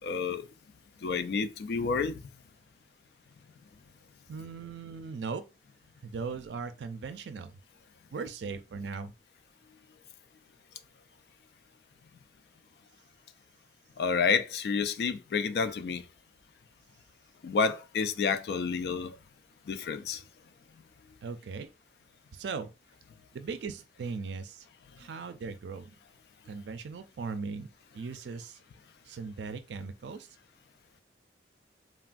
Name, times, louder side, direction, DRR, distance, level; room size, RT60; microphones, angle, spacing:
voice 1, 0.0-0.4 1.0-2.2 14.0-16.0 17.4-19.2 19.7-20.2, left 5 dB, 65° left, 0.3 m, -29 dB
voice 2, 4.3-5.4 6.0-7.5 8.1-9.1 21.2-21.7 22.3-22.7 23.3-24.7 25.0-25.9 26.5-27.7 27.9-28.6 29.1-30.3, right 4 dB, 80° right, 0.4 m, -38 dB
3.4 x 2.2 x 2.5 m
head